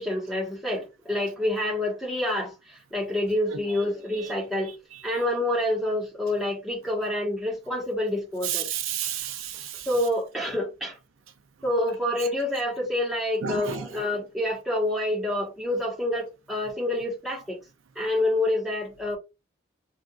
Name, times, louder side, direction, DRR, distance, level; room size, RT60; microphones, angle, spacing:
voice 1, 0.0-4.8 5.0-8.7 9.9-11.0 11.6-17.6 17.9-19.2, left 1 dB, ahead, 1.2 m, -27 dB
voice 2, 8.4-9.9 13.4-13.9, right 8 dB, 85° right, 0.5 m, -31 dB
3.4 x 2.5 x 2.3 m
head